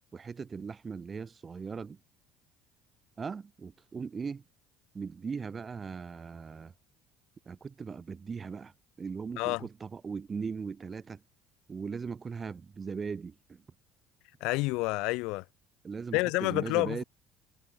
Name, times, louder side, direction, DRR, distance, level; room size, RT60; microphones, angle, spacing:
voice 1, 0.1-2.0 3.2-4.4 4.9-6.7 7.4-8.7 9.0-11.2 11.7-13.6 15.8-17.0, right 5 dB, 20° right, 1.4 m, -39 dB
voice 2, 14.4-15.4 16.1-17.0, left 24 dB, 75° left, 0.8 m, -29 dB
cardioid pair, 160°, 0 cm